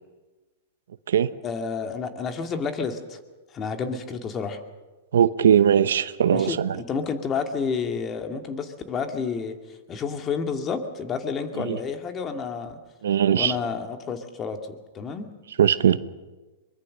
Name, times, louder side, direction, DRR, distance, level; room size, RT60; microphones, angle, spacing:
voice 1, 1.4-3.2 3.5-4.6 6.3-6.6 6.9-9.6 9.9-12.8 13.3-15.3, left 5 dB, 30° left, 6 dB, 2.3 m, -30 dB
voice 2, 5.1-6.8 11.5-11.8 13.0-13.6 15.6-16.0, right 9 dB, 80° right, 15 dB, 0.9 m, -20 dB
23.5 x 21.5 x 6.6 m, 1.2 s
hypercardioid pair, 115°, 0 cm